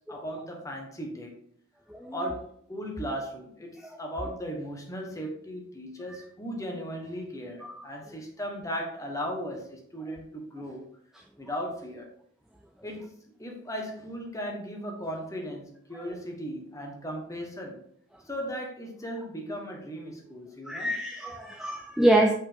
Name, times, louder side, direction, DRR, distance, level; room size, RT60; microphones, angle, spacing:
voice 1, 0.1-1.3 2.1-10.8 11.4-12.1 12.8-17.8 18.2-20.9, equal, 15° left, 1.2 m, -37 dB
voice 2, 20.7-22.3, right 1 dB, ahead, 0.4 m, -25 dB
5.8 x 5.4 x 3.6 m
head